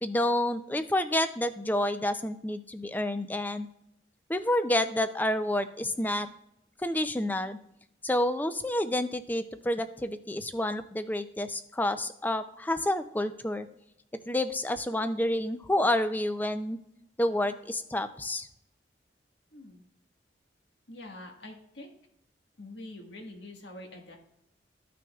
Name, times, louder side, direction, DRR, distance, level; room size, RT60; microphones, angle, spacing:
voice 1, 0.0-3.7 4.3-6.3 6.8-7.6 8.0-13.7 14.3-16.8 17.2-18.5, left 1 dB, 10° left, 10 dB, 0.4 m, -29 dB
voice 2, 20.9-21.9 22.6-24.2, left 1 dB, 75° left, 2 dB, 1.6 m, -45 dB
14.0 x 6.0 x 2.4 m, 0.79 s
head